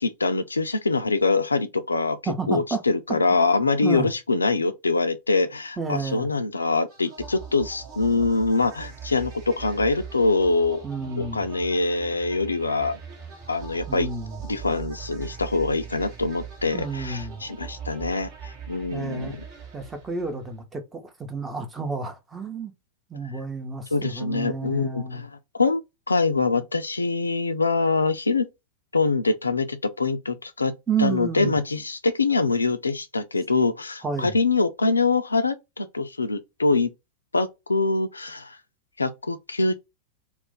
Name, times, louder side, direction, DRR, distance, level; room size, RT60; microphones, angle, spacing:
voice 1, 0.0-2.2 2.5-10.8 11.2-13.0 13.5-14.1 14.4-19.4 23.9-25.3 25.5-25.8 26.1-28.5 28.9-36.9 37.3-38.6 39.0-39.8, left 3 dB, 80° left, 0.3 m, -24 dB
voice 2, 2.3-2.8 3.1-3.2 3.8-4.1 5.8-6.3 10.8-11.4 13.9-14.4 16.7-17.4 18.9-19.4 19.7-22.7 23.1-25.3 30.9-31.6 34.0-34.3, right 4 dB, 15° right, 0.7 m, -30 dB
sound 1, 6.9-20.5, right 7 dB, 45° right, 0.9 m, -41 dB
2.4 x 2.1 x 3.8 m
figure-of-eight pair, 90°, 0 cm